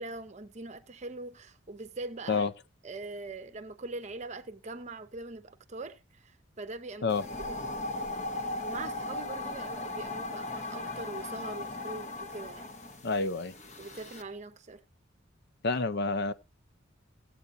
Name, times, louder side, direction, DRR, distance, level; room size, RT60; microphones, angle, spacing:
voice 1, 0.0-2.4 2.8-7.2 7.5-7.6 8.6-12.7 13.8-14.8, right 3 dB, 35° right, 0.8 m, -42 dB
sound 1, 7.1-14.2, left 2 dB, 35° left, 1.0 m, -38 dB
voice 2, 13.0-13.5 15.6-16.3, left 4 dB, 55° left, 0.5 m, -28 dB
16.5 x 8.4 x 2.6 m
head